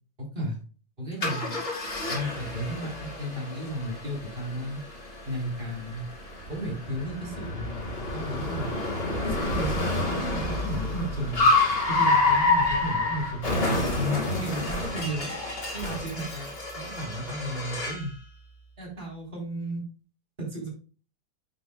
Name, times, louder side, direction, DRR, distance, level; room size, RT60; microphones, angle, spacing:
voice 1, 1.0-1.6 2.1-4.8 5.3-6.1 6.5-8.8 9.2-11.5 11.9-15.3 15.7-18.1 18.8-19.8 20.4-20.7, right 1 dB, 30° right, -2 dB, 3.9 m, -34 dB
Car, 1.2-18.1, left 2 dB, 35° left, 2.6 m, -28 dB
sound 1, 10.4-11.4, right 1 dB, 75° right, 3.5 m, -46 dB
9.2 x 7.7 x 2.2 m, 0.37 s
omnidirectional pair, 1.8 m